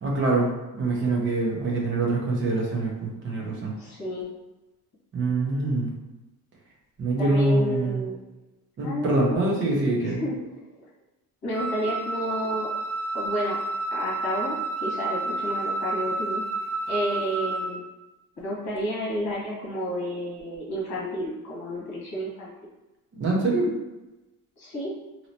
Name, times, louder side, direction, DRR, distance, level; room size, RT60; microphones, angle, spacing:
voice 1, 0.0-0.5 0.7-3.7 5.1-5.9 7.0-8.0 8.8-10.2 23.1-23.7, right 2 dB, 35° right, -2 dB, 0.7 m, -24 dB
voice 2, 3.8-4.3 7.2-8.2 8.8-9.4 10.0-10.9 11.4-12.7 13.1-13.6 13.9-16.4 16.9-17.8 18.4-22.5 24.6-24.9, equal, 50° left, -5 dB, 1.4 m, -31 dB
Wind instrument woodwind instrument, 11.5-17.8, right 3 dB, 5° left, 0.9 m, -30 dB
3.1 x 2.8 x 2.8 m, 1.0 s
cardioid pair, 180°, 36 cm